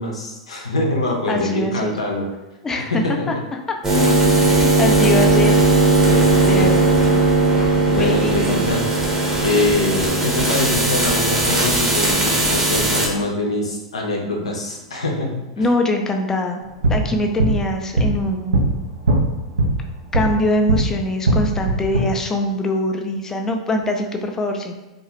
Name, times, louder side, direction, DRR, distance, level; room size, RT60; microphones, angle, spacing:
voice 1, 0.0-2.3 2.8-3.4 3.9-4.6 6.1-6.7 7.9-8.8 9.4-15.7, left 2 dB, 85° left, 0 dB, 0.6 m, -24 dB
voice 2, 1.3-1.9 2.6-3.0 3.5-3.6 4.4-5.5 6.5-7.2 8.0-8.6 15.6-16.6 16.9-18.7 20.1-24.7, left 1 dB, 15° left, 3 dB, 0.4 m, -23 dB
sound 1, 3.8-13.1, right 2 dB, 15° right, 0.8 m, -17 dB
sound 2, 16.6-20.8 21.2-22.0, right 2 dB, 80° right, 0.7 m, -20 dB
2.5 x 2.3 x 3.0 m, 1.0 s
hypercardioid pair, 95°, 3 cm